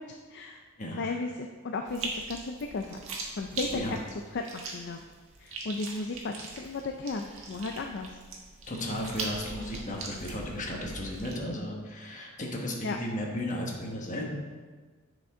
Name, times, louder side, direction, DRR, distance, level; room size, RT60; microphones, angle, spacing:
voice 1, 0.0-0.6 0.9-3.0 3.4-4.0 4.3-5.0 5.4-8.2 12.8-13.0, left 3 dB, 55° left, 4 dB, 0.4 m, -35 dB
voice 2, 0.8-1.2 3.7-4.0 8.7-14.2, left 1 dB, 40° left, 0 dB, 1.3 m, -35 dB
sound 1, 1.9-11.4, right 3 dB, 80° right, 1.4 m, -41 dB
10.0 x 5.2 x 3.7 m, 1.4 s
head